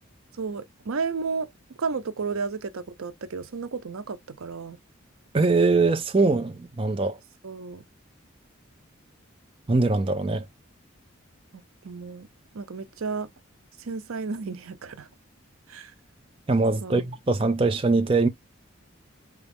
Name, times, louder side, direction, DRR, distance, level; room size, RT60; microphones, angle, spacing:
voice 1, 0.4-1.5 1.8-4.8 7.4-7.8 11.8-12.3 12.5-13.3 13.8-15.1 15.7-15.9 16.8-17.0, right 4 dB, 85° right, 0.6 m, -32 dB
voice 2, 5.3-7.2 9.7-10.4 16.5-18.3, right 3 dB, 25° right, 0.4 m, -22 dB
4.1 x 2.4 x 3.4 m
head